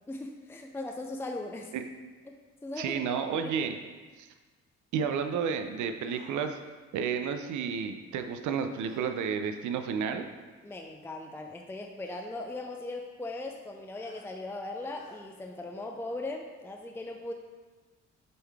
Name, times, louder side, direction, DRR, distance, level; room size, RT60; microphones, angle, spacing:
voice 1, 0.1-1.7 2.6-3.0 3.4-3.7 10.6-17.3, left 2 dB, 10° left, 2 dB, 0.5 m, -39 dB
voice 2, 2.8-3.7 4.2-4.3 4.9-6.6 6.9-10.3, right 6 dB, 75° right, 8 dB, 0.6 m, -31 dB
sound 1, 6.0-6.4 8.8-9.1 10.4-10.5 12.0-12.3 14.0-14.3 14.9-15.2, left 2 dB, 40° left, 1.8 m, -56 dB
7.7 x 3.8 x 3.5 m, 1.3 s
cardioid pair, 90°, 30 cm